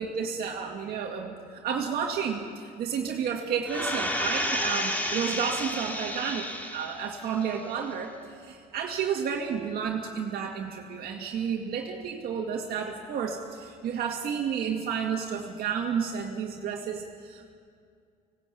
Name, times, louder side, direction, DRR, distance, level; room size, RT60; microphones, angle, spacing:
voice 1, 0.0-8.1 8.4-17.5, right 7 dB, 65° right, 0 dB, 2.1 m, -31 dB
sound 1, 3.7-7.1 7.5-7.6, equal, 10° left, 2.7 m, -31 dB
19.5 x 17.5 x 8.3 m, 2.2 s
cardioid pair, 110°, 17 cm